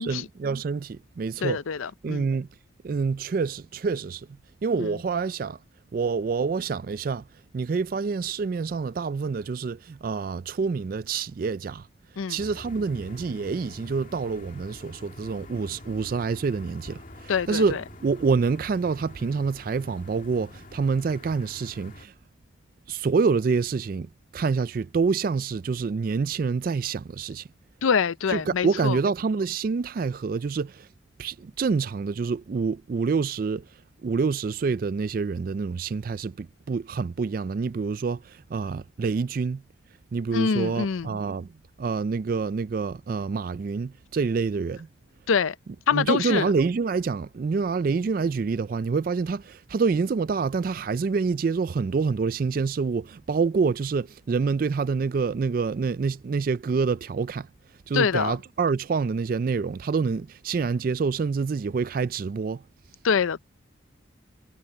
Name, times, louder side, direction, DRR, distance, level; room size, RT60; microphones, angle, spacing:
voice 1, 0.0-1.6 2.0-2.5 2.8-4.3 4.6-5.6 5.9-7.2 7.5-11.9 12.3-22.1 22.9-27.5 28.3-30.9 31.2-33.7 34.0-39.6 40.1-41.5 41.8-44.9 45.9-57.5 57.9-62.6, right 5 dB, 45° right, 0.3 m, -27 dB
voice 2, 1.4-2.3 4.8-5.0 12.2-12.4 17.3-17.8 27.8-29.0 40.3-41.1 45.3-45.6 45.9-46.5 57.9-58.3 63.0-63.4, left 6 dB, 90° left, 0.5 m, -25 dB
sound 1, 12.4-22.1, left 1 dB, 40° left, 2.5 m, -46 dB
head